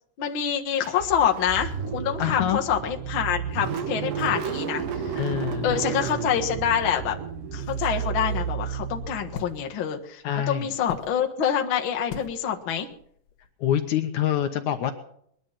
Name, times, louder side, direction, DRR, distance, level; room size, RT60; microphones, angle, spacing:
voice 1, 0.2-5.2 5.6-7.2 7.5-10.2 10.5-12.9, left 8 dB, 50° left, 2 dB, 1.8 m, -26 dB
Car / Engine starting, 0.8-9.6, right 7 dB, 80° right, 2.9 m, -32 dB
voice 2, 2.2-2.6 4.3-4.4 5.2-5.8 10.2-10.7 13.6-14.9, left 10 dB, 70° left, 7 dB, 2.3 m, -26 dB
sound 1, 2.3-8.7, right 11 dB, 50° right, 3.2 m, -46 dB
sound 2, 5.7-6.3 6.6-6.7 7.5-9.6 10.9-11.1 12.1-12.4 12.7-13.0 13.3-13.5, left 7 dB, 85° left, 3.1 m, -39 dB
21.0 x 11.0 x 5.7 m, 0.67 s
omnidirectional pair, 3.7 m